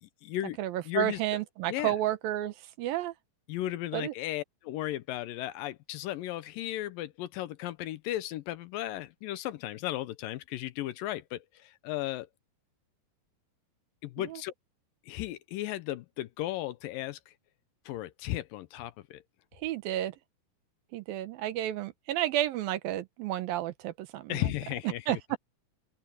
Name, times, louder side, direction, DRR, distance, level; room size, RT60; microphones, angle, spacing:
voice 1, 0.0-0.6 0.9-1.4 1.7-2.0 3.5-12.3 14.0-14.5 15.1-17.3 17.9-19.2 24.3-25.2, left 14 dB, 80° left, 2.3 m, -35 dB
voice 2, 0.6-3.1 3.9-4.1 14.2-14.4 19.6-20.1 20.9-24.4 25.1-25.4, right 13 dB, 75° right, 2.8 m, -31 dB
open air
omnidirectional pair, 4.2 m